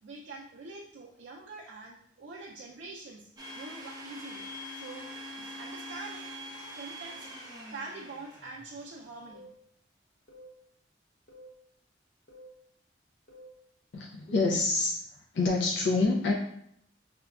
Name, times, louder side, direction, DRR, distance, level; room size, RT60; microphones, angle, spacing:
voice 1, 0.0-3.3 3.5-4.4 4.7-5.1 5.4-6.3 6.7-7.3 7.7-9.5, right 3 dB, 75° right, -3 dB, 0.4 m, -44 dB
Domestic sounds home sounds, 3.4-8.9, equal, 20° right, 0.5 m, -43 dB
sound 1, 9.3-9.5 10.3-10.5 11.3-11.5 12.3-12.5 13.3-13.5 14.3-14.6, right 3 dB, 50° left, 0.8 m, -49 dB
voice 2, 13.9-15.0 15.3-16.3, left 3 dB, 65° left, 0 dB, 0.4 m, -26 dB
5.0 x 2.2 x 2.3 m, 0.71 s
head